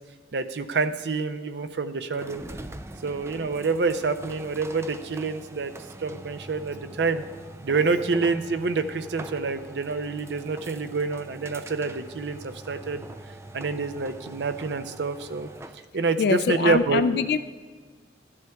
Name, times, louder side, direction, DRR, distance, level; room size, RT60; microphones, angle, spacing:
voice 1, 0.3-2.4 3.0-5.7 6.0-7.2 7.6-13.1 13.5-15.5 15.9-17.0, right 4 dB, 75° right, 9 dB, 0.5 m, -27 dB
sound 1, 2.1-15.9, right 1 dB, 15° right, 0.3 m, -43 dB
voice 2, 16.2-17.4, left 5 dB, 60° left, 11 dB, 0.3 m, -23 dB
14.0 x 10.5 x 2.3 m, 1.5 s
head